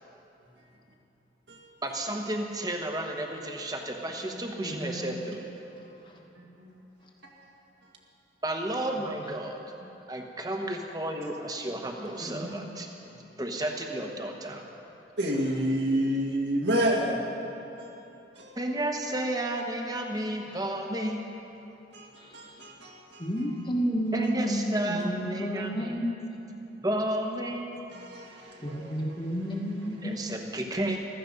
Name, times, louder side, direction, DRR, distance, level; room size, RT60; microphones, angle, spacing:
voice 1, 1.8-5.4 8.4-9.6 10.1-12.9 13.4-14.6 18.5-21.2 24.1-26.0 26.8-27.7 30.0-31.0, right 1 dB, 20° right, 3 dB, 1.1 m, -32 dB
voice 2, 4.6-5.2 12.2-12.7 22.2-22.3 23.2-26.1 28.6-30.2, equal, 25° left, 0 dB, 1.4 m, -31 dB
voice 3, 6.2-6.7 7.2-7.3 15.2-17.2 17.8-17.9 18.4-18.6 21.9-23.3 27.9-29.1 29.9-30.0, equal, 70° right, -1 dB, 2.0 m, -30 dB
15.0 x 13.5 x 5.3 m, 3.0 s
head